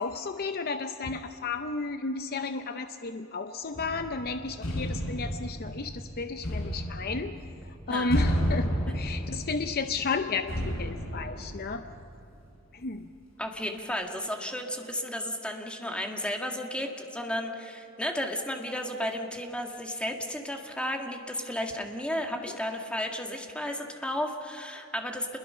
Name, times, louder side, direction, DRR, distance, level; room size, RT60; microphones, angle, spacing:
voice 1, 0.0-7.4 7.9-11.8 12.7-13.1, left 4 dB, 50° left, 8 dB, 0.7 m, -33 dB
sound 1, 3.7-12.4, equal, 90° left, 4.6 m, -32 dB
voice 2, 13.4-25.4, left 1 dB, 5° left, 2 dB, 1.8 m, -33 dB
28.5 x 21.5 x 5.7 m, 2.5 s
head